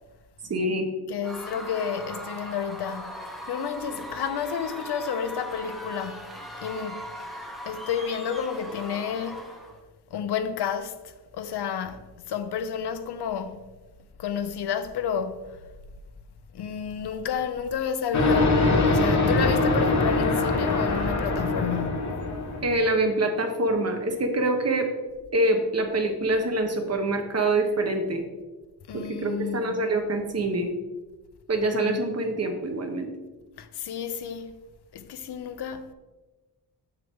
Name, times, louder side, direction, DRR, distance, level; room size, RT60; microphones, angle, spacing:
voice 1, 0.5-0.9 22.6-24.9 25.3-28.2 28.9-30.7 31.5-33.1, right 2 dB, 40° right, 0.8 m, -25 dB
voice 2, 1.1-6.3 6.6-7.1 7.7-9.5 10.1-13.6 14.2-15.6 16.5-22.2 28.9-29.8 31.8-32.0 33.6-34.6 34.9-35.9, left 7 dB, 80° left, 0.7 m, -31 dB
Screaming / Cheering / Crowd, 1.2-9.8, equal, ahead, 0.7 m, -39 dB
sound 1, 18.1-22.9, left 2 dB, 45° left, 1.2 m, -23 dB
7.2 x 6.7 x 3.5 m
wide cardioid pair, 175°, 40 cm